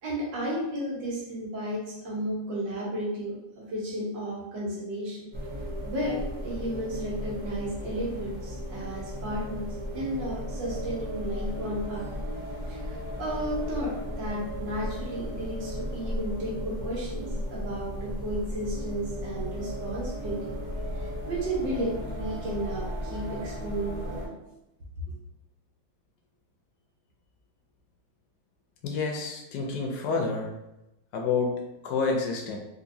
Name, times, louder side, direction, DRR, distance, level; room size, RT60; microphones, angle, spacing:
voice 1, 0.0-5.2 5.8-9.7 9.9-12.1 12.6-20.5 20.9-24.3 25.1-25.2, right 1 dB, 80° right, -5 dB, 1.8 m, -33 dB
sound 1, 5.3-24.3, equal, 35° right, 0.4 m, -35 dB
voice 2, 28.8-30.5 31.1-32.6, left 4 dB, 75° left, 2 dB, 1.1 m, -29 dB
3.8 x 2.6 x 2.6 m, 0.93 s
omnidirectional pair, 2.0 m